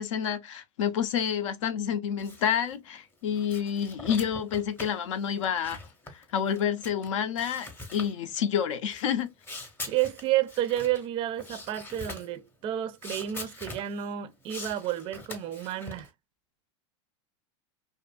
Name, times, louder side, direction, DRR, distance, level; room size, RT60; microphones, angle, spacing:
voice 1, 0.0-5.8 6.1-9.3, left 8 dB, 80° left, 0.6 m, -29 dB
sound 1, 2.2-2.8 3.1-7.1 7.4-8.1 8.9-11.1 11.4-12.3 13.0-14.1 14.4-16.1, left 2 dB, 15° left, 0.7 m, -43 dB
voice 2, 9.9-16.1, right 12 dB, 35° right, 0.4 m, -30 dB
2.7 x 2.4 x 2.2 m
supercardioid pair, 135°, 16 cm